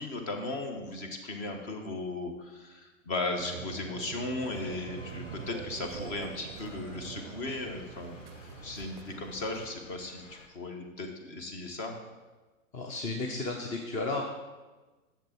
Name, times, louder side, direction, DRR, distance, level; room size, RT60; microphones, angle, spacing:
voice 1, 0.0-11.9, left 2 dB, 35° left, 4 dB, 1.5 m, -36 dB
sound 1, 3.4-9.7, right 11 dB, 45° right, 0.5 m, -45 dB
sound 2, 4.4-10.5, left 4 dB, 65° left, 1.2 m, -53 dB
voice 2, 12.7-14.2, left 3 dB, 20° left, 2 dB, 0.6 m, -33 dB
10.5 x 7.2 x 4.5 m, 1.2 s
figure-of-eight pair, 115°, 41 cm